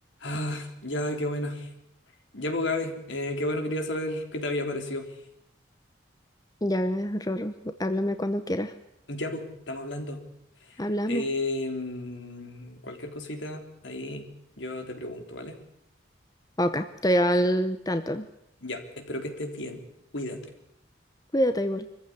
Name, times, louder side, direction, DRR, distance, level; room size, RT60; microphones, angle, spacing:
voice 1, 0.2-1.7 2.3-5.1 9.1-10.2 10.7-10.8 11.1-14.3 14.6-15.6 18.6-19.8 20.1-20.4, left 1 dB, 70° left, 5 dB, 3.7 m, -32 dB
voice 2, 6.6-8.7 10.8-11.2 16.6-18.3 21.3-21.9, equal, 20° left, 10 dB, 0.8 m, -26 dB
25.0 x 15.0 x 9.7 m, 0.76 s
head